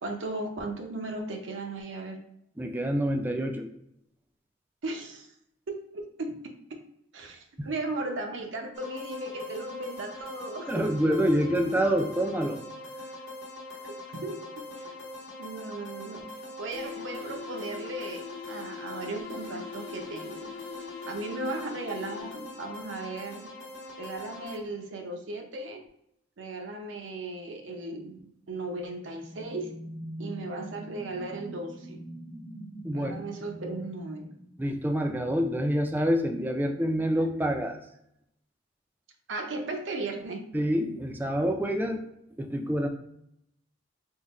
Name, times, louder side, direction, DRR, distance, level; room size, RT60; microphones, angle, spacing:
voice 1, 0.0-2.2 4.8-5.3 5.7-6.3 7.1-11.2 11.5-11.7 13.8-14.5 14.8-15.0 15.4-16.3 16.6-20.5 21.1-23.6 24.0-25.8 26.4-29.7 30.2-32.0 32.9-34.4 39.3-40.5 41.8-41.9, right 2 dB, 80° right, 3 dB, 0.7 m, -36 dB
voice 2, 2.6-3.7 7.6-7.7 10.7-12.6 32.8-33.1 34.6-37.8 40.5-42.0 42.4-42.9, equal, 10° right, 4 dB, 0.4 m, -27 dB
sound 1, 8.7-24.6, left 1 dB, 65° left, 0.9 m, -43 dB
sound 2, 16.7-22.7, left 7 dB, 85° left, 0.4 m, -42 dB
sound 3, 28.7-35.0, right 1 dB, 45° left, 1.0 m, -43 dB
3.7 x 2.1 x 4.1 m, 0.77 s
head